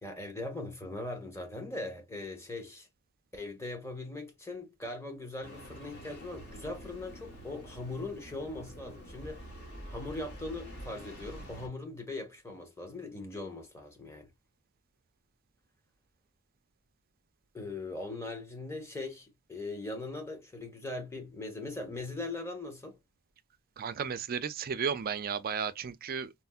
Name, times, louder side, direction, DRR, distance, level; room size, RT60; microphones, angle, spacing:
voice 1, 0.0-2.9 3.3-9.4 9.9-14.3 17.5-23.0, left 2 dB, 15° left, 1.0 m, -40 dB
Engine starting, 5.4-11.7, right 1 dB, 50° left, 1.4 m, -47 dB
voice 2, 23.8-26.3, right 6 dB, 45° right, 0.4 m, -34 dB
4.2 x 2.0 x 2.3 m
head